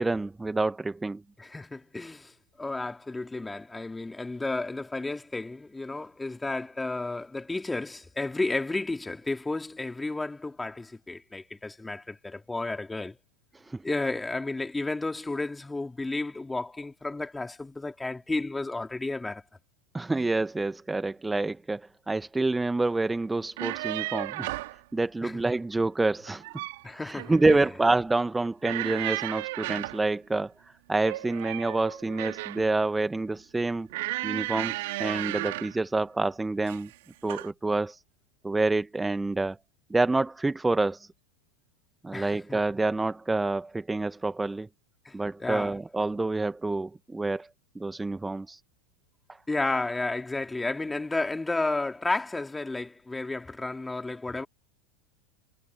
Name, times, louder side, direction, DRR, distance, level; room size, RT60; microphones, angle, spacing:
voice 1, 0.0-1.2 13.5-13.8 19.9-24.5 24.9-26.4 26.9-33.9 34.2-36.9 37.2-38.0 38.4-39.6 39.9-41.1 42.0-44.7 45.1-47.5 47.7-48.6, right 2 dB, 10° right, 1.4 m, -27 dB
voice 2, 1.4-2.3 2.6-13.2 13.8-19.4 25.2-25.3 26.8-27.3 42.1-42.6 45.1-45.8 49.5-54.5, left 2 dB, 10° left, 3.8 m, -32 dB
sound 1, 23.4-24.8 26.2-26.8 27.2-27.7 28.6-30.0 31.0-32.7 33.9-35.8 36.6-36.9 37.3-37.5, right 20 dB, 55° right, 3.0 m, -34 dB
figure-of-eight pair, 85°, 0 cm